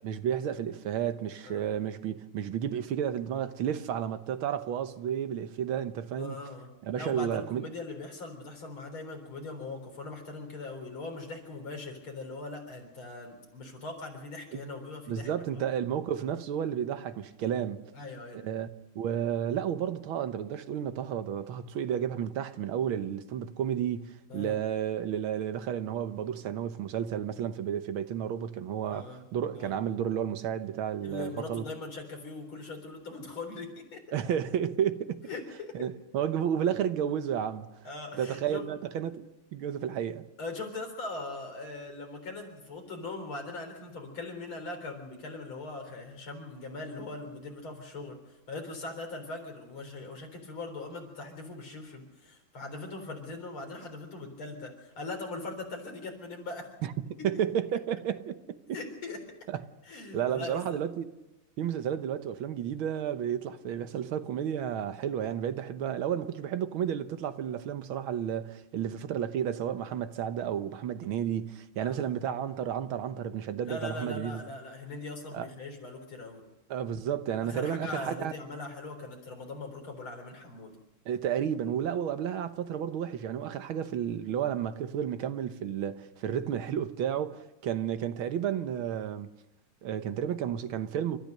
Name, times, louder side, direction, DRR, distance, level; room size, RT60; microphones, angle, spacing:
voice 1, 0.0-6.4 6.8-7.7 14.5-14.6 15.1-17.8 18.3-18.7 19.0-31.6 34.1-35.2 35.7-37.7 38.2-40.3 56.8-56.9 57.2-58.8 59.5-59.6 60.1-61.1 61.6-74.4 75.3-75.5 76.7-78.3 81.1-89.3 89.8-91.2, right 9 dB, 85° right, 1.8 m, -32 dB
voice 2, 6.2-15.6 17.9-18.4 24.3-24.5 28.9-29.2 29.5-29.7 31.0-34.0 35.3-35.9 37.8-38.7 40.4-56.7 58.7-59.2 59.8-60.8 71.8-72.2 73.6-76.4 77.4-80.8, left 3 dB, 90° left, 4.8 m, -41 dB
29.5 x 13.5 x 6.6 m
omnidirectional pair, 2.2 m